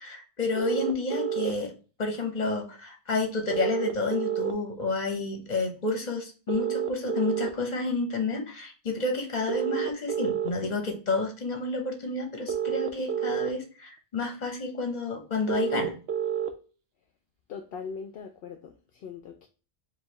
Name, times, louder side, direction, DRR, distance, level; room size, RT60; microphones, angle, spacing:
voice 1, 0.0-1.7 2.0-15.9, left 3 dB, 45° left, 1.1 m, -30 dB
sound 1, 0.5-1.5 3.5-4.5 6.5-7.5 9.5-10.5 12.5-13.5 15.5-16.5, right 10 dB, 75° right, 0.9 m, -29 dB
voice 2, 17.5-19.5, left 6 dB, 70° left, 0.8 m, -40 dB
4.5 x 2.7 x 3.1 m
omnidirectional pair, 1.1 m